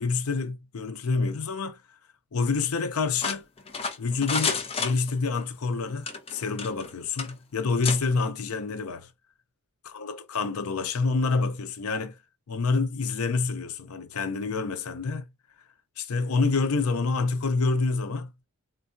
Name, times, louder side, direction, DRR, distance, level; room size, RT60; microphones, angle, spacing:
voice 1, 0.0-1.8 2.3-3.4 4.0-9.1 9.8-12.2 12.5-15.3 16.0-18.3, left 4 dB, 85° left, 0.6 m, -27 dB
sound 1, 3.2-5.4 6.0-6.9 7.2-7.3 7.8-8.0, left 5 dB, 25° left, 0.6 m, -30 dB
3.8 x 2.2 x 2.5 m
head